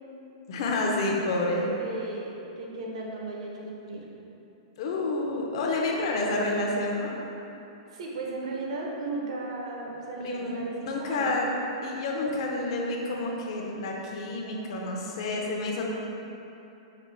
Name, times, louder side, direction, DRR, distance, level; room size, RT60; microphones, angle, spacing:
voice 1, 0.5-1.6 4.8-7.1 10.2-10.6 10.9-11.5 11.8-15.9, left 2 dB, 50° left, -1 dB, 0.6 m, -29 dB
voice 2, 1.5-4.1 7.9-11.4, right 2 dB, 70° right, -2 dB, 0.8 m, -35 dB
5.0 x 3.0 x 3.3 m, 2.9 s
supercardioid pair, 165°, 3 cm